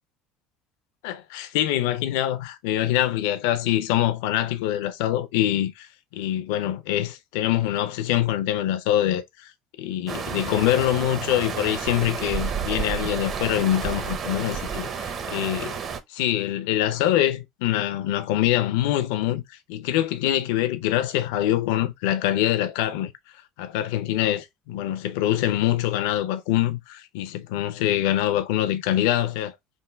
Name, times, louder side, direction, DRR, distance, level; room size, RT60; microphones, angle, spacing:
voice 1, 1.0-5.9 6.1-9.5 9.8-15.8 16.1-23.1 23.6-29.5, left 13 dB, 85° left, 0.6 m, -24 dB
sound 1, 10.1-16.0, right 6 dB, 40° right, 0.7 m, -31 dB
3.6 x 2.2 x 4.3 m
cardioid pair, 125°, 0 cm